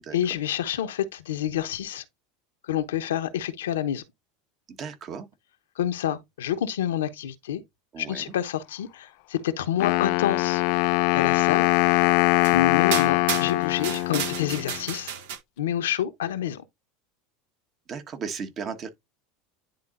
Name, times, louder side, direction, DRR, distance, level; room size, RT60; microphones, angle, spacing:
voice 1, 0.1-2.0 2.6-4.0 5.8-7.6 8.0-10.6 11.1-11.7 12.5-15.1 15.6-16.6, left 10 dB, 80° left, 1.0 m, -28 dB
voice 2, 4.7-5.3 7.9-8.3 17.9-18.9, right 6 dB, 40° right, 1.5 m, -35 dB
Wind instrument woodwind instrument, 9.8-14.8, left 21 dB, 60° left, 0.3 m, -22 dB
sound 1, 11.7-11.8 12.4-12.6 12.9-15.4, right 8 dB, 70° right, 1.6 m, -32 dB
10.5 x 3.7 x 2.6 m
hypercardioid pair, 85°, 0 cm